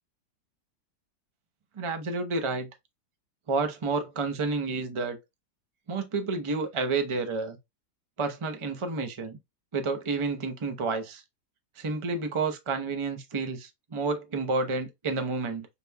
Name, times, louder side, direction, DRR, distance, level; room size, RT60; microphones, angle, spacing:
voice 1, 1.8-2.7 3.5-5.2 5.9-7.6 8.2-9.4 9.7-11.2 11.8-15.7, right 3 dB, 35° right, 0.4 m, -30 dB
4.9 x 3.4 x 2.2 m
omnidirectional pair, 1.8 m